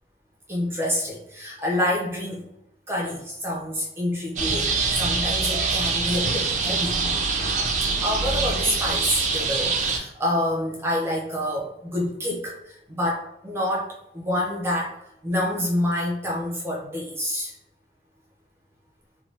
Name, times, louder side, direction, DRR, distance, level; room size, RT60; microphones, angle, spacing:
voice 1, 0.5-2.5 2.9-7.0 8.0-15.0 15.2-17.6, left 1 dB, 15° right, -3 dB, 0.7 m, -27 dB
sound 1, 4.4-10.0, right 4 dB, 45° right, 0.4 m, -24 dB
2.8 x 2.2 x 3.2 m, 0.83 s
head